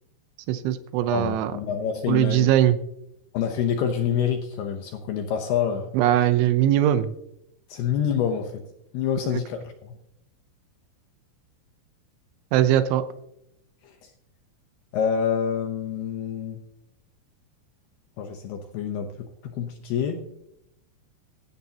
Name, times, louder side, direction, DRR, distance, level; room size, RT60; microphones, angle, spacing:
voice 1, 0.5-1.5 2.1-2.8 5.9-7.1 9.2-9.4 12.5-13.0, right 12 dB, 80° right, 11 dB, 3.1 m, -21 dB
voice 2, 1.1-2.5 3.3-5.9 7.7-8.6 8.9-9.9 14.0-14.1 14.9-16.6 18.2-19.1 19.6-20.2, left 8 dB, 75° left, 5 dB, 2.4 m, -27 dB
16.5 x 13.0 x 2.9 m, 0.80 s
omnidirectional pair, 5.6 m